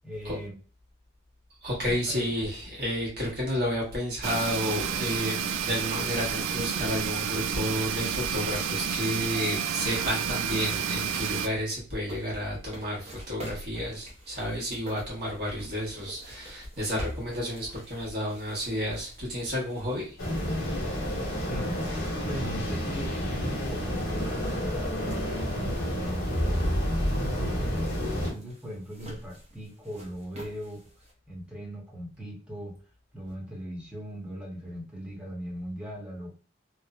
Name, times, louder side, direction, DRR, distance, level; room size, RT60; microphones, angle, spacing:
voice 1, 0.0-0.6 1.8-2.3 21.4-21.9 22.3-24.7 24.9-26.8 27.1-27.7 28.1-30.8 31.3-32.8 33.1-36.3, equal, 5° right, -4 dB, 0.9 m, -39 dB
voice 2, 1.6-20.1, equal, 55° right, -5 dB, 1.3 m, -31 dB
sound 1, 4.2-11.5, right 7 dB, 80° right, 0.3 m, -30 dB
sound 2, 11.8-21.9 22.3-22.4 23.3-23.4 23.7-31.1, equal, 35° right, 0.7 m, -46 dB
sound 3, 20.2-28.3, equal, 60° left, 1.0 m, -29 dB
3.0 x 2.0 x 2.4 m, 0.37 s
head